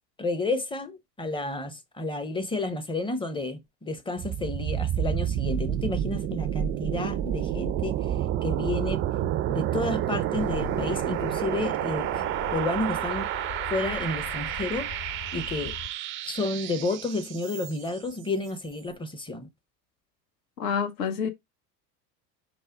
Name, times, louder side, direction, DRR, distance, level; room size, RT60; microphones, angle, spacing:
voice 1, 0.2-8.0 8.4-9.0 9.5-12.2 12.5-13.3 13.7-14.9 15.3-15.8 16.2-19.5, left 2 dB, 10° left, 0.6 m, -31 dB
sound 1, 4.2-18.0, right 11 dB, 30° right, 0.4 m, -30 dB
sound 2, 10.4-15.9, left 11 dB, 50° left, 1.6 m, -41 dB
voice 2, 20.6-21.3, left 7 dB, 70° left, 1.1 m, -28 dB
4.8 x 2.1 x 4.7 m
figure-of-eight pair, 75°, 49 cm